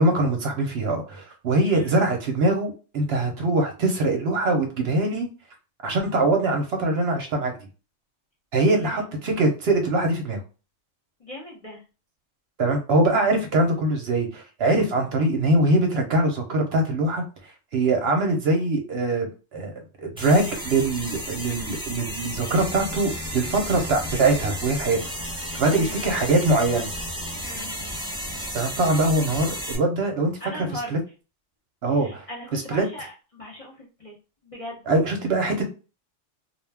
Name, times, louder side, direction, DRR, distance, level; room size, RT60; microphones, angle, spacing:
voice 1, 0.0-5.3 5.8-7.5 8.5-10.4 12.6-17.2 17.7-19.7 20.0-25.0 25.6-26.9 28.5-30.3 30.9-31.0 31.8-32.3 32.5-32.8 34.9-35.7, right 2 dB, 65° right, 3 dB, 0.8 m, -22 dB
voice 2, 8.6-9.5 11.2-11.8 25.7-26.2 27.4-27.8 30.4-30.9 31.9-34.1 34.4-34.8, left 1 dB, 35° left, -3 dB, 0.7 m, -39 dB
sound 1, 20.2-29.8, equal, 5° right, 0.6 m, -33 dB
2.4 x 2.2 x 3.3 m, 0.33 s
omnidirectional pair, 1.3 m